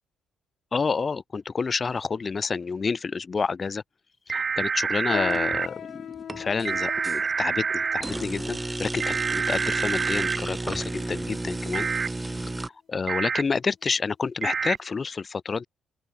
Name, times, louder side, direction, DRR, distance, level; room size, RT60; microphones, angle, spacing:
voice 1, 0.7-3.8 4.3-11.9 12.2-15.6, left 5 dB, 35° left, 5.1 m, -29 dB
sound 1, 4.3-5.7 6.6-8.0 9.0-10.4 11.7-12.1 13.1-13.4 14.4-14.8, right 5 dB, 40° right, 3.4 m, -27 dB
sound 2, 5.1-10.8 11.4-11.6 12.3-12.6 13.0-13.2 13.9-14.0, left 9 dB, 65° left, 6.0 m, -40 dB
sound 3, 5.3-5.8 6.2-7.2 8.0-12.7, right 2 dB, 15° right, 3.2 m, -32 dB
open air
cardioid pair, 90°, 0 cm